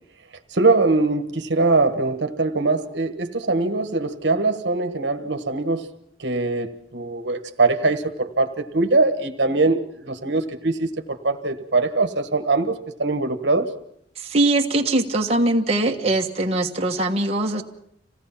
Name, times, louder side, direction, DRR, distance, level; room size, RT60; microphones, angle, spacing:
voice 1, 0.5-5.8 6.2-13.7, right 3 dB, 70° right, 1.4 m, -22 dB
voice 2, 14.2-17.6, right 2 dB, 30° right, 1.4 m, -21 dB
26.5 x 17.0 x 5.8 m
head